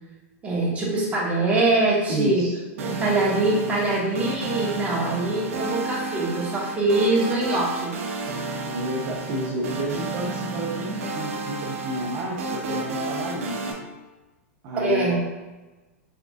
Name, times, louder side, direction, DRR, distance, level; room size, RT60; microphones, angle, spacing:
voice 1, 0.4-2.4 2.8-7.9 14.8-15.2, right 2 dB, 20° right, -5 dB, 1.5 m, -23 dB
voice 2, 2.1-2.6 8.7-13.8 14.6-15.2, right 1 dB, 45° right, -3 dB, 0.7 m, -30 dB
sound 1, 2.8-13.7, right 3 dB, 75° right, 0.8 m, -31 dB
4.6 x 3.7 x 2.5 m, 1.1 s
hypercardioid pair, 120°, 7 cm